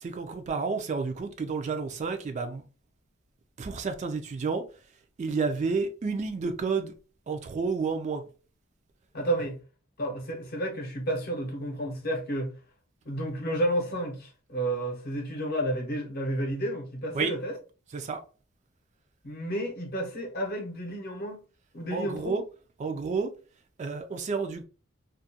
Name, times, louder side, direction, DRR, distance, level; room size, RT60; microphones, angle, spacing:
voice 1, 0.0-2.6 3.6-4.6 5.2-6.9 7.3-8.2 17.1-17.3 17.9-18.2 21.9-22.4 22.8-23.3 23.8-24.6, right 4 dB, 35° right, 0.3 m, -30 dB
voice 2, 9.1-9.5 10.0-12.5 13.0-17.6 19.2-21.4 21.7-22.4, right 1 dB, 50° left, 0.7 m, -31 dB
2.3 x 2.1 x 2.7 m
head